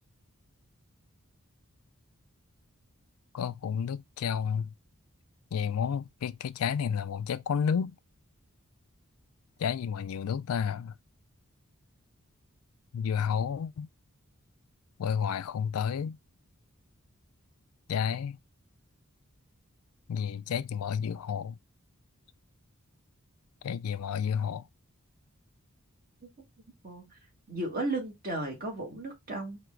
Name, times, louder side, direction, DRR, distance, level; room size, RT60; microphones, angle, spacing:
voice 1, 3.3-4.7 5.5-8.0 9.6-10.9 12.9-13.9 15.0-16.2 17.9-18.4 20.1-21.6 23.6-24.6, left 7 dB, 85° left, 0.4 m, -31 dB
voice 2, 26.8-27.2 27.5-29.6, right 2 dB, 45° right, 2.2 m, -34 dB
4.5 x 2.9 x 3.7 m
head